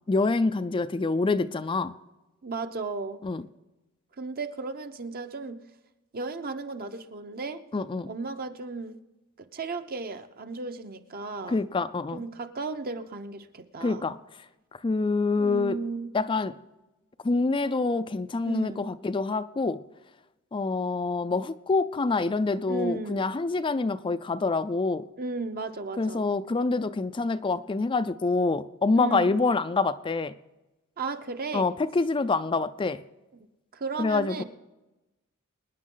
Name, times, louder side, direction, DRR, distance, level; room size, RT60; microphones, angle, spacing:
voice 1, 0.1-1.9 3.2-3.4 7.7-8.1 11.5-12.2 13.8-14.2 14.8-15.8 16.1-16.6 17.2-19.8 20.5-25.0 26.0-30.3 31.5-33.0 34.0-34.4, left 3 dB, 25° left, 11 dB, 0.4 m, -26 dB
voice 2, 2.4-3.2 4.2-5.6 6.1-7.6 8.1-9.0 9.4-11.6 12.1-14.1 15.4-16.1 18.4-18.9 22.7-23.3 25.2-26.3 29.0-29.4 31.0-31.7 33.3-33.5 33.7-34.4, right 3 dB, 45° right, 8 dB, 0.9 m, -35 dB
24.5 x 10.0 x 3.9 m, 1.0 s
head